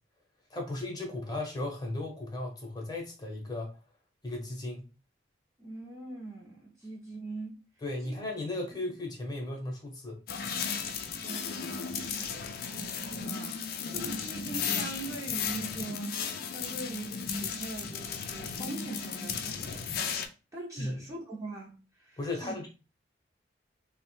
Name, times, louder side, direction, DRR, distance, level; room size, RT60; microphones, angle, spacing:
voice 1, 0.5-3.7 4.2-4.8 7.8-10.2 20.8-20.9 22.2-22.7, left 2 dB, 20° left, 0.7 m, -36 dB
voice 2, 5.6-7.7 8.0-8.2 11.2-12.4 12.7-16.2 16.5-17.1 17.4-19.8 20.5-22.6, right 2 dB, 15° right, 0.6 m, -42 dB
sound 1, 10.3-20.3, left 6 dB, 55° left, 0.4 m, -35 dB
3.0 x 2.1 x 3.0 m
head